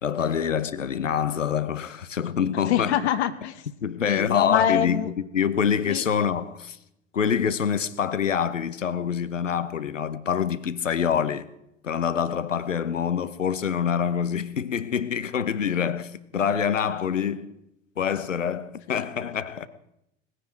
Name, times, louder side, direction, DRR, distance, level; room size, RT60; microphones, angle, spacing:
voice 1, 0.0-3.0 3.8-6.8 7.1-11.5 11.8-17.6 18.0-19.7, left 7 dB, 80° left, 1.0 m, -26 dB
voice 2, 2.7-3.6 4.0-5.1 5.9-6.0 15.7-15.9 18.9-19.0, left 10 dB, 60° left, 1.3 m, -25 dB
20.0 x 16.0 x 4.5 m
figure-of-eight pair, 75°, 37 cm